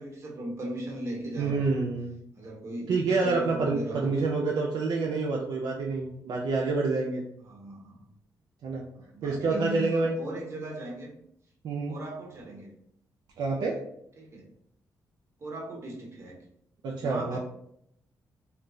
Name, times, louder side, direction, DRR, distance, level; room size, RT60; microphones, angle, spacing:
voice 1, 0.0-1.6 2.3-4.2 7.4-8.0 9.0-11.1 11.9-12.7 14.2-14.5 15.4-16.4 17.0-17.4, right 1 dB, 40° right, -1 dB, 0.9 m, -38 dB
voice 2, 1.4-2.2 2.9-7.2 8.6-8.8 9.2-10.1 11.6-12.0 13.4-13.7 16.8-17.4, right 3 dB, 70° right, -2 dB, 0.4 m, -27 dB
3.7 x 2.1 x 2.3 m, 0.73 s
cardioid pair, 120°, 7 cm